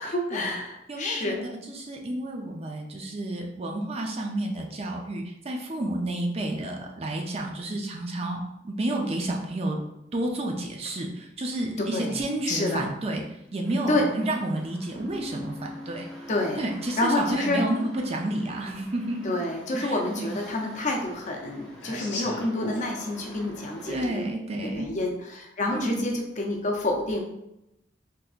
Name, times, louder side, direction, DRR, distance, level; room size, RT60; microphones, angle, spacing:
voice 1, 0.0-1.5 11.8-12.2 12.5-12.8 13.9-14.1 16.3-16.6 17.0-17.6 19.2-24.3 24.6-27.2, left 2 dB, 40° left, 1 dB, 0.6 m, -28 dB
voice 2, 0.9-1.3 1.7-9.8 10.1-13.2 13.5-16.1 16.6-19.2 19.7-20.3 23.9-24.9 25.7-26.1, right 1 dB, 35° right, 1 dB, 0.5 m, -30 dB
sound 1, 13.6-24.0, equal, 5° left, 0.7 m, -48 dB
Bass guitar, 15.0-18.6, left 1 dB, 70° right, 1.1 m, -44 dB
sound 2, 16.3-16.4 17.7-17.8 18.3-18.4 18.6-19.3 19.6-22.9, left 1 dB, 85° left, 1.0 m, -36 dB
3.7 x 2.8 x 2.4 m, 0.85 s
head